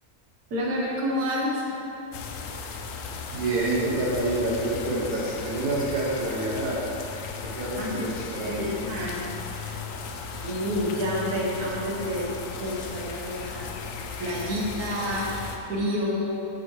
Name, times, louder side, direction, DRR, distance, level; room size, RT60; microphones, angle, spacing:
voice 1, 0.5-1.6 7.8-8.1 8.4-9.2 10.4-13.7 14.2-15.3 15.7-16.4, equal, 75° right, -4 dB, 1.7 m, -29 dB
sound 1, 2.1-15.6, left 5 dB, 65° left, 0.9 m, -36 dB
voice 2, 3.3-6.8 7.4-8.7, right 2 dB, 90° right, -4 dB, 1.6 m, -27 dB
9.0 x 6.8 x 3.2 m, 2.9 s
omnidirectional pair, 1.6 m